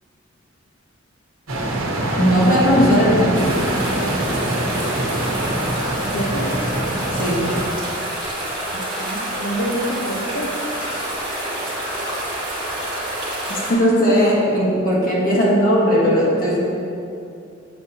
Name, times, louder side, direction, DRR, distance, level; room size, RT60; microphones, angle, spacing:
sound 1, 1.5-7.6, right 1 dB, 85° right, 1.0 m, -24 dB
voice 1, 2.2-3.5 7.1-7.4 13.5-16.6, equal, 45° left, -5 dB, 1.3 m, -17 dB
sound 2, 3.3-13.7, right 1 dB, 25° right, 1.7 m, -27 dB
voice 2, 6.1-6.6 8.7-10.5, right 1 dB, 70° left, -5 dB, 0.9 m, -27 dB
7.6 x 7.0 x 2.8 m, 2.6 s
head